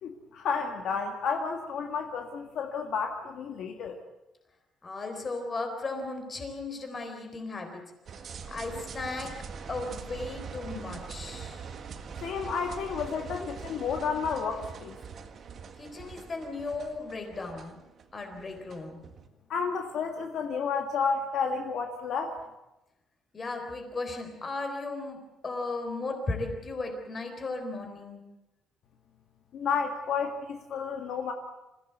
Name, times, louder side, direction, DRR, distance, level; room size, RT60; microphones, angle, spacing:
voice 1, 0.0-4.0 12.2-15.0 19.5-22.3 29.5-31.3, left 5 dB, 55° left, 3 dB, 1.9 m, -31 dB
voice 2, 4.8-7.8 8.4-9.4 9.7-11.7 13.4-13.5 15.8-17.8 18.1-19.0 23.3-28.2, left 3 dB, 25° left, 5 dB, 4.0 m, -36 dB
sound 1, 8.1-19.3, right 6 dB, 40° right, 1.7 m, -43 dB
27.5 x 16.0 x 8.1 m, 0.96 s
cardioid pair, 175°, 0 cm